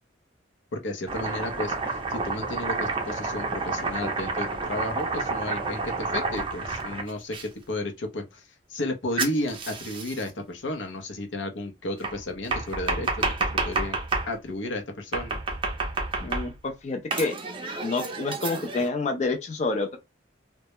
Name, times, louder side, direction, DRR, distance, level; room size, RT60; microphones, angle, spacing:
voice 1, 0.7-14.0 14.3-15.4, left 1 dB, 90° left, 0.6 m, -33 dB
Domestic sounds home sounds, 1.1-7.5 9.2-10.3 12.0-14.3 15.1-16.7 17.1-18.9, right 3 dB, 30° right, 0.4 m, -30 dB
voice 2, 16.2-17.3 17.8-20.0, left 3 dB, 40° left, 0.4 m, -28 dB
2.2 x 2.0 x 2.8 m
head